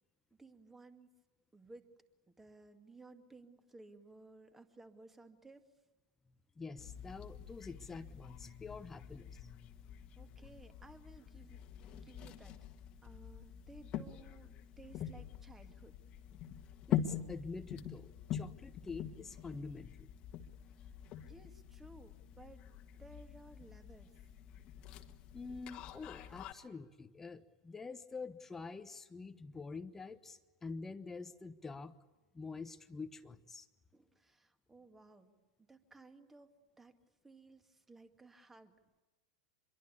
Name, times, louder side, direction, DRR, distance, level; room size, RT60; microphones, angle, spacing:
voice 1, 0.4-1.1 1.5-1.9 2.3-5.6 10.2-11.6 11.9-12.6 13.0-15.9 20.8-20.9 21.2-22.7 22.9-24.1 33.9-35.3 35.6-36.9 37.2-38.7, right 3 dB, 10° right, 8 dB, 2.2 m, -58 dB
voice 2, 6.6-9.7 16.9-20.1 25.3-32.0 32.3-33.7, left 4 dB, 15° left, 9 dB, 1.1 m, -47 dB
sound 1, 6.8-26.5, left 10 dB, 35° left, 1.7 m, -45 dB
26.0 x 22.5 x 8.5 m, 1.2 s
figure-of-eight pair, 90°, 3 cm